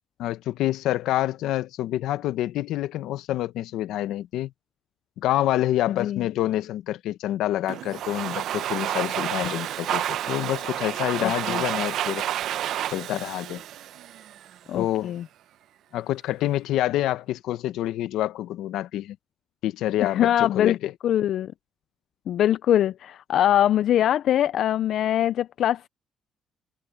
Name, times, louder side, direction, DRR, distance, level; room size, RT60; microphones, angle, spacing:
voice 1, 0.2-4.5 5.2-12.2 12.9-13.6 14.7-15.1 15.9-19.2 19.6-20.9, left 14 dB, 90° left, 0.8 m, -27 dB
voice 2, 5.9-6.2 11.2-11.6 14.7-15.2 20.0-20.8 21.0-21.5 22.3-25.9, left 11 dB, 75° left, 0.3 m, -23 dB
Domestic sounds home sounds, 7.7-14.6, right 11 dB, 80° right, 0.7 m, -30 dB
cardioid pair, 90°, 0 cm